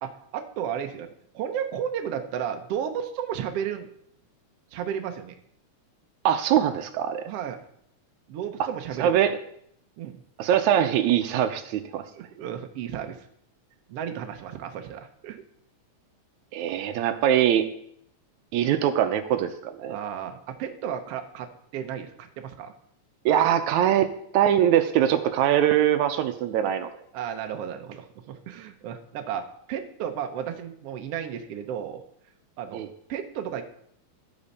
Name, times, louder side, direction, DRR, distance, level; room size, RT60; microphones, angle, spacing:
voice 1, 0.0-3.9 4.7-5.3 7.2-7.6 8.3-9.2 10.0-10.2 12.1-13.2 13.9-15.4 19.9-22.7 27.1-32.0 32.6-32.8 33.1-33.6, right 9 dB, 65° right, 5 dB, 1.8 m, -33 dB
voice 2, 6.3-7.2 9.0-9.3 10.4-12.0 16.5-17.7 18.5-20.0 23.3-26.9 32.7-32.9, right 10 dB, 85° right, 9 dB, 2.1 m, -22 dB
12.5 x 8.5 x 4.2 m, 0.69 s
omnidirectional pair, 3.3 m